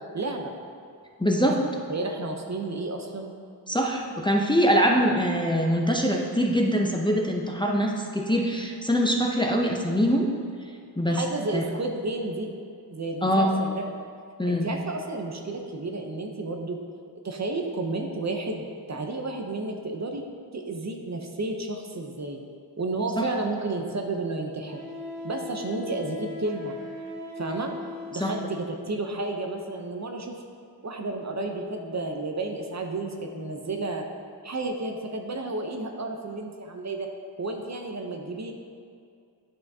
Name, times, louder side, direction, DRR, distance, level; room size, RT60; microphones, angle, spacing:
voice 1, 0.1-0.5 1.4-3.3 11.1-12.5 12.9-13.8 14.4-16.8 17.2-20.2 20.5-22.4 22.8-24.8 25.2-26.8 27.4-27.7 28.1-30.3 30.8-34.0 34.4-37.1 37.4-38.5, right 2 dB, 40° right, 3 dB, 0.7 m, -32 dB
voice 2, 1.2-1.6 3.7-10.3 11.0-11.2 11.5-11.6 13.2-13.5 14.4-14.7 23.2-23.3 28.2-28.3, equal, 10° left, 0 dB, 0.6 m, -23 dB
Wind instrument woodwind instrument, 24.7-28.7, left 1 dB, 55° right, 1.3 m, -39 dB
9.3 x 5.6 x 2.7 m, 2.3 s
wide cardioid pair, 75°, 41 cm